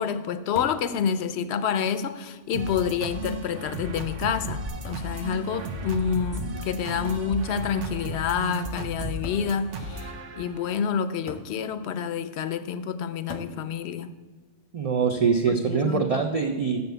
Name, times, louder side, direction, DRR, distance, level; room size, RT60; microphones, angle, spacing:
voice 1, 0.0-14.1 15.5-16.1, left 7 dB, 70° left, 13 dB, 0.8 m, -28 dB
sound 1, 0.6-0.9 1.9-2.0 2.7-3.0 4.8-5.2 7.0-7.3 8.4-8.5 9.2-9.5 11.3-11.6 13.3-13.6 15.1-15.5, left 3 dB, 30° left, 0.7 m, -41 dB
sound 2, 2.5-10.7, right 1 dB, 85° right, 1.2 m, -35 dB
sound 3, 4.7-5.0 5.3-6.8 7.2-7.7 8.0-9.5 9.8-9.9, right 1 dB, 15° right, 0.9 m, -37 dB
voice 2, 14.7-16.8, right 5 dB, 45° right, 4 dB, 0.5 m, -24 dB
7.0 x 6.7 x 7.8 m, 1.3 s
omnidirectional pair, 1.2 m